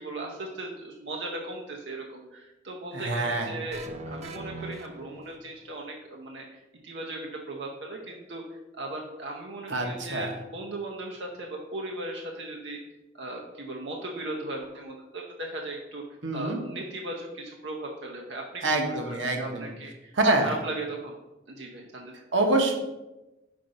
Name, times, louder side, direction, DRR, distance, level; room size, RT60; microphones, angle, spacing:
voice 1, 0.0-12.8 13.1-16.0 16.3-20.1 20.4-21.2 21.5-22.1, right 2 dB, 70° right, 0 dB, 0.7 m, -37 dB
voice 2, 2.9-3.5 9.7-10.3 16.2-16.6 18.6-19.7 20.2-20.5 22.3-22.7, right 2 dB, 90° right, 3 dB, 1.0 m, -25 dB
sound 1, 3.7-5.7, right 2 dB, 35° right, 0.5 m, -41 dB
5.2 x 4.0 x 5.3 m, 1.0 s
head